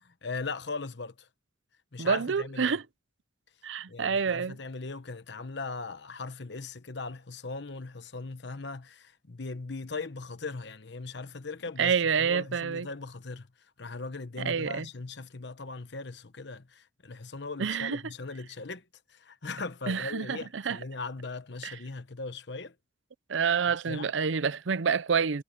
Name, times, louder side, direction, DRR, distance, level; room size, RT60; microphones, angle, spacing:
voice 1, 0.2-1.3 1.9-2.8 3.9-13.5 13.8-22.7 23.9-24.1, left 3 dB, 60° left, 1.1 m, -39 dB
voice 2, 2.0-2.8 3.6-4.6 11.8-12.9 14.4-14.9 17.6-18.0 19.9-20.8 21.6-21.7 23.3-25.4, right 6 dB, 70° right, 0.6 m, -28 dB
head